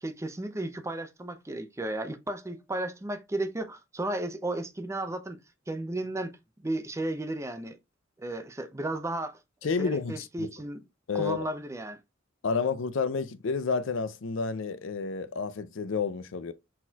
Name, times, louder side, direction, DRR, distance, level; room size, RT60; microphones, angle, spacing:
voice 1, 0.0-5.4 5.7-6.4 6.6-7.8 8.2-9.4 9.8-10.8 11.1-12.0, right 1 dB, 15° right, 0.5 m, -34 dB
voice 2, 9.6-10.5 11.1-11.5 12.4-16.5, left 5 dB, 70° left, 0.5 m, -30 dB
4.2 x 4.1 x 2.3 m
head